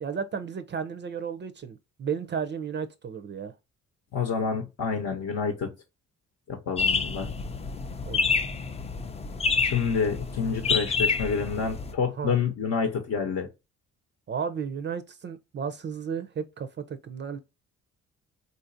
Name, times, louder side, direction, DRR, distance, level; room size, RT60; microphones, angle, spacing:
voice 1, 0.0-3.6 8.1-8.3 12.1-12.4 14.3-17.4, right 6 dB, 35° right, 0.5 m, -33 dB
voice 2, 4.1-5.7 6.5-7.3 9.6-13.5, left 6 dB, 60° left, 0.8 m, -28 dB
sound 1, 6.8-11.9, left 5 dB, 20° left, 0.4 m, -28 dB
3.9 x 2.5 x 2.5 m
cardioid pair, 90°, 30 cm